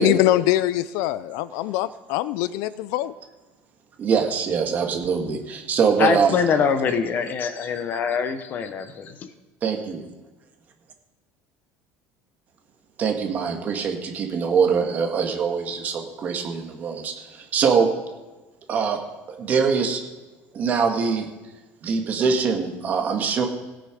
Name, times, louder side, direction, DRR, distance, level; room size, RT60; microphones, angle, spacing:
voice 1, 0.0-3.1, left 14 dB, 70° left, 0.4 m, -23 dB
voice 2, 4.0-6.4 9.6-10.0 13.0-17.9 18.7-19.0 19.3-20.0 20.5-21.3 21.8-23.5, right 6 dB, 30° right, 1.6 m, -23 dB
voice 3, 6.0-9.3, left 6 dB, 35° left, 0.9 m, -24 dB
17.0 x 7.6 x 5.1 m
cardioid pair, 165°, 6 cm